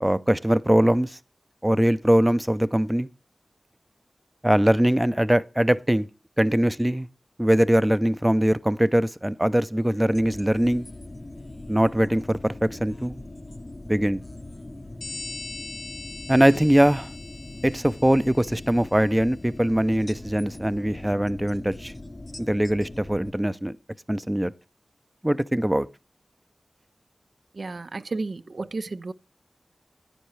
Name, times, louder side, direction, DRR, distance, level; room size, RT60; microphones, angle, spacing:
voice 1, 0.0-1.2 1.6-3.1 4.4-6.1 6.4-7.1 7.4-10.9 11.7-13.2 13.9-14.2 16.3-17.1 17.6-21.9 22.4-23.8 24.1-24.5 25.2-25.9, right 1 dB, 15° right, 0.5 m, -22 dB
sound 1, 10.1-23.3, left 2 dB, 35° left, 0.7 m, -41 dB
sound 2, 15.0-19.3, left 3 dB, 70° left, 0.9 m, -41 dB
voice 2, 27.5-29.1, right 3 dB, 70° right, 0.5 m, -32 dB
10.0 x 9.2 x 3.2 m
cardioid pair, 50°, 0 cm